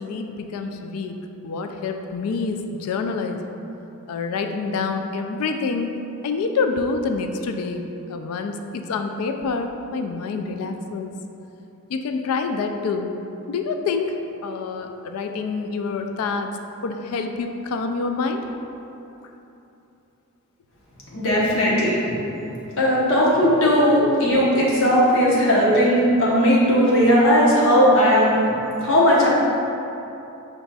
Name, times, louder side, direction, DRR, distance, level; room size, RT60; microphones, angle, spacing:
voice 1, 0.0-3.4 4.1-11.1 11.9-13.1 13.5-18.4, left 4 dB, 80° left, 6 dB, 0.3 m, -27 dB
voice 2, 21.1-21.9 22.8-28.3 28.8-29.3, equal, 60° left, -6 dB, 1.0 m, -17 dB
5.0 x 4.0 x 2.3 m, 2.9 s
head